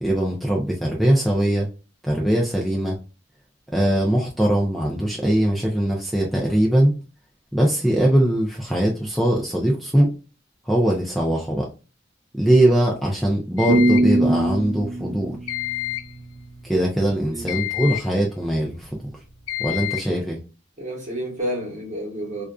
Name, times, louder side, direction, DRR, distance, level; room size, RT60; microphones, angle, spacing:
voice 1, 0.0-1.7 2.0-3.0 3.7-7.0 7.5-10.1 10.7-11.7 12.4-15.4 16.6-18.9 19.6-20.4, right 1 dB, ahead, 0.4 m, -21 dB
sound 1, 13.6-14.2 15.5-16.2 17.5-18.2 19.5-20.1, left 18 dB, 75° left, 0.3 m, -29 dB
sound 2, 13.7-16.6, right 1 dB, 75° right, 0.5 m, -22 dB
voice 2, 17.0-17.5 20.8-22.4, equal, 40° right, 1.1 m, -30 dB
2.5 x 2.3 x 2.2 m
head